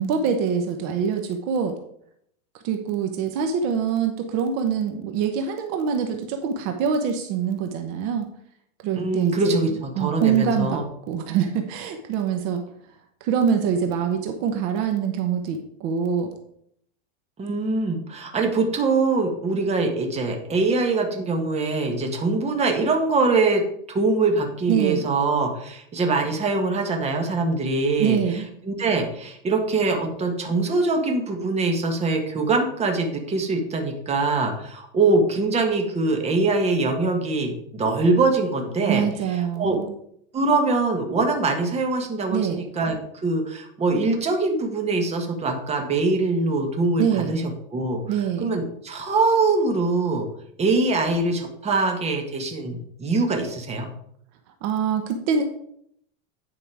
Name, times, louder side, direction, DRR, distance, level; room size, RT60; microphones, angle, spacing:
voice 1, 0.0-1.8 2.6-8.3 8.8-12.6 13.2-16.3 24.7-25.0 28.0-28.5 38.9-39.9 42.3-42.6 47.0-47.3 48.0-48.6 54.6-55.4, right 7 dB, 55° right, 5 dB, 1.1 m, -24 dB
voice 2, 8.9-10.8 17.4-23.6 23.9-39.0 39.6-39.8 40.3-43.0 43.2-47.4 47.7-50.3 50.6-53.9, right 3 dB, 20° right, 3 dB, 1.5 m, -23 dB
9.6 x 5.3 x 4.8 m, 0.69 s
supercardioid pair, 140°, 31 cm